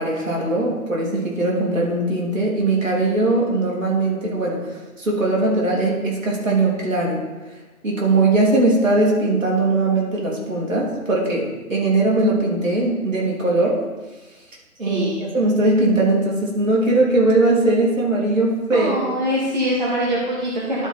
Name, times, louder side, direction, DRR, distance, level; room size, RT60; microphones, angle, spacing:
voice 1, 0.0-4.6 5.0-7.2 7.8-13.8 14.8-15.1 15.3-19.0, right 2 dB, 60° right, -4 dB, 2.8 m, -20 dB
voice 2, 14.9-15.2 18.7-20.9, equal, 30° right, -6 dB, 1.0 m, -23 dB
11.5 x 4.4 x 4.2 m, 1.2 s
figure-of-eight pair, 175°, 43 cm